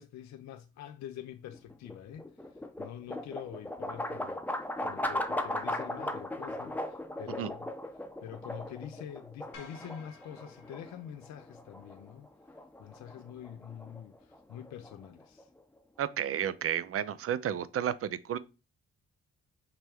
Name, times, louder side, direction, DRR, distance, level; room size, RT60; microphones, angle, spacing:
voice 1, 0.0-15.5, left 10 dB, 65° left, 0.4 m, -46 dB
sound 1, 1.5-15.6, left 1 dB, 5° left, 0.7 m, -38 dB
sound 2, 9.5-11.9, left 3 dB, 85° left, 0.8 m, -54 dB
voice 2, 16.0-18.4, right 9 dB, 50° right, 0.5 m, -32 dB
5.9 x 2.2 x 3.4 m
supercardioid pair, 45°, 30 cm